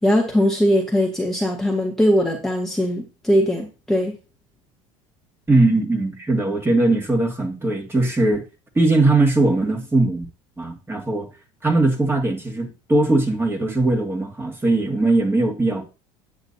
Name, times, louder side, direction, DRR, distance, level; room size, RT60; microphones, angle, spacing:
voice 1, 0.0-4.1, equal, 5° left, 1.8 m, -20 dB
voice 2, 5.5-8.4 8.7-10.2 10.6-11.3 11.6-15.8, right 2 dB, 15° right, 2.3 m, -20 dB
9.0 x 8.0 x 2.8 m
hypercardioid pair, 85°, 16 cm